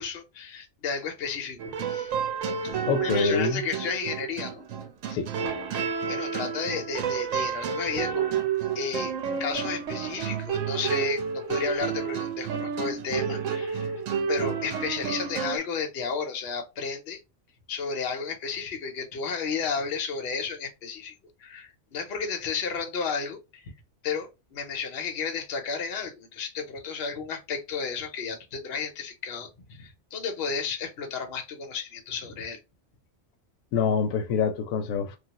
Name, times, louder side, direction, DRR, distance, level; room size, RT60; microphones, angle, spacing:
voice 1, 0.0-2.1 2.6-4.6 5.7-8.3 8.7-9.1 9.4-14.0 14.3-17.2 17.7-21.1 21.4-23.7 24.0-32.6, left 5 dB, 55° left, 0.9 m, -33 dB
sound 1, 1.6-15.6, right 7 dB, 80° right, 1.0 m, -30 dB
voice 2, 2.9-3.6 5.1-5.3 33.7-35.2, left 6 dB, 90° left, 1.0 m, -26 dB
3.1 x 2.3 x 2.8 m
omnidirectional pair, 1.4 m